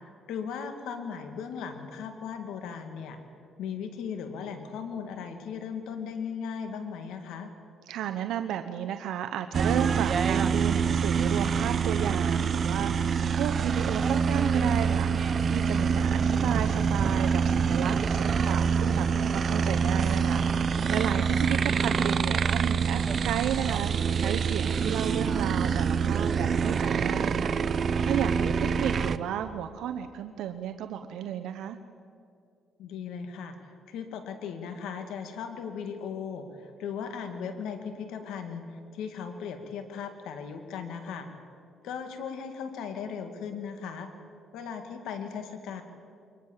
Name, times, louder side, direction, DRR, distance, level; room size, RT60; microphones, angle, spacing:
voice 1, 0.3-3.2 3.6-7.5 28.6-28.9 32.8-41.3 41.8-44.1 44.5-45.8, left 6 dB, 90° left, 6 dB, 2.3 m, -37 dB
voice 2, 7.9-27.5 28.0-31.8, right 10 dB, 85° right, 7 dB, 0.8 m, -33 dB
sound 1, 9.5-29.2, right 6 dB, 50° right, 0.7 m, -26 dB
23.5 x 20.5 x 7.4 m, 2.4 s
cardioid pair, 90°, 0 cm